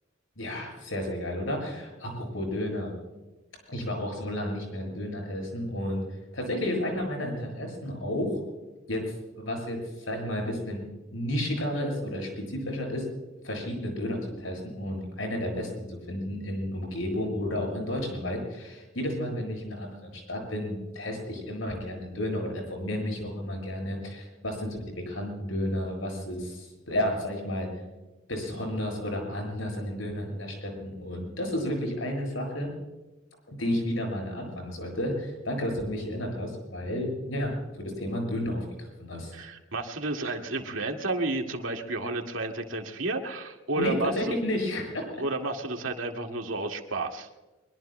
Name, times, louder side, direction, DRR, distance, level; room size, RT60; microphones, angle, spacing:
voice 1, 0.4-2.9 3.7-6.0 6.3-8.4 8.9-9.0 9.3-10.8 11.1-13.1 13.4-27.7 28.3-32.7 33.5-37.5 37.8-39.3 43.8-45.1, left 1 dB, 90° left, 2 dB, 7.3 m, -32 dB
voice 2, 39.3-44.3 45.2-47.3, right 2 dB, 90° right, 3 dB, 2.0 m, -31 dB
24.0 x 23.0 x 2.2 m, 1.1 s
head